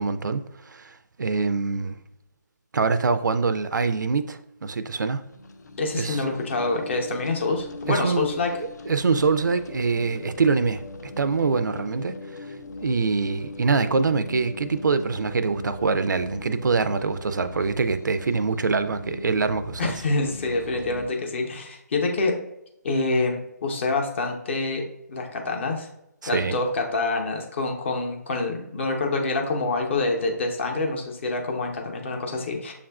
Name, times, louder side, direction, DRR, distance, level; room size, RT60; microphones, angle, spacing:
voice 1, 0.0-2.0 2.7-5.2 6.0-6.2 7.9-8.3 8.9-12.2 12.8-19.9 26.2-26.6, right 4 dB, 75° right, 0.4 m, -24 dB
sound 1, 5.1-21.1, left 3 dB, 65° left, 0.4 m, -40 dB
voice 2, 5.8-8.5 19.8-22.4 22.8-24.8 25.1-25.9 26.3-32.7, left 3 dB, 40° left, 0.7 m, -26 dB
6.8 x 2.4 x 2.2 m
figure-of-eight pair, 155°, 10 cm